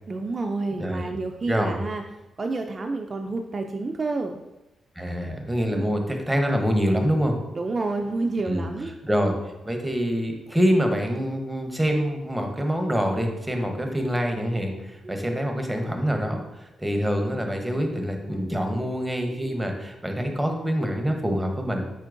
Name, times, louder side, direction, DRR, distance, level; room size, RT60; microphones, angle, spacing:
voice 1, 0.1-2.0 2.4-4.4 5.7-5.9 7.5-9.0 15.0-15.2, right 3 dB, 45° right, 4 dB, 0.3 m, -29 dB
voice 2, 0.8-1.1 1.5-1.8 5.0-7.4 8.5-8.7 9.0-9.4 9.6-21.8, equal, 10° right, 3 dB, 0.8 m, -25 dB
4.4 x 4.3 x 2.5 m, 0.95 s
supercardioid pair, 55°, 0 cm